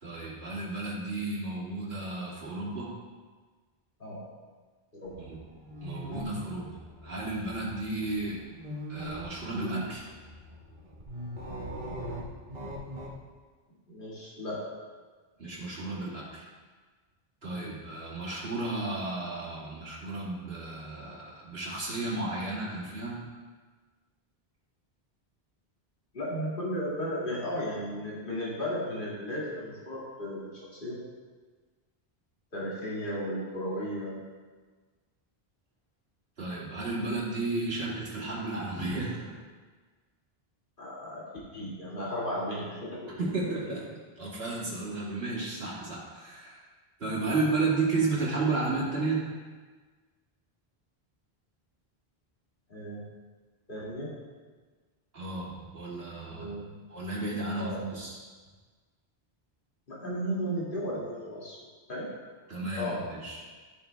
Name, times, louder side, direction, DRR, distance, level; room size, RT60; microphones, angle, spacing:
voice 1, 0.0-2.9 5.2-5.4 5.8-6.7 7.0-8.4 8.9-10.1 15.4-16.5 17.4-23.2 36.4-39.3 43.2-43.8 44.2-46.6 47.0-49.2 55.1-56.5 56.9-58.2 62.5-63.4, right 3 dB, 75° right, -7 dB, 2.5 m, -33 dB
sound 1, 5.1-13.2, equal, 50° right, 1.6 m, -41 dB
voice 2, 13.9-14.6 17.5-17.7 26.1-31.0 32.5-34.2 40.8-41.3 41.5-43.2 43.7-43.8 47.1-47.2 52.7-53.0 53.7-54.1 56.1-56.8 57.6-57.8 59.9-61.6 61.9-62.1 62.8-63.0, equal, 55° left, -6 dB, 2.5 m, -35 dB
12.5 x 7.1 x 3.5 m, 1.4 s
omnidirectional pair, 1.0 m